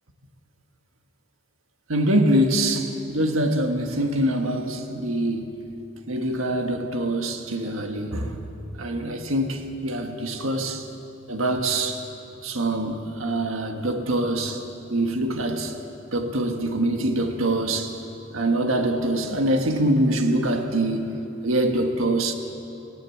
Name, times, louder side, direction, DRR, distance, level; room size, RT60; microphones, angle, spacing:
voice 1, 1.9-5.6 6.1-8.4 8.8-10.9 11.3-12.0 12.4-14.6 14.9-15.7 16.1-17.9 18.3-22.3, right 1 dB, 90° right, 4 dB, 1.7 m, -24 dB
18.0 x 17.0 x 8.5 m, 2.8 s
head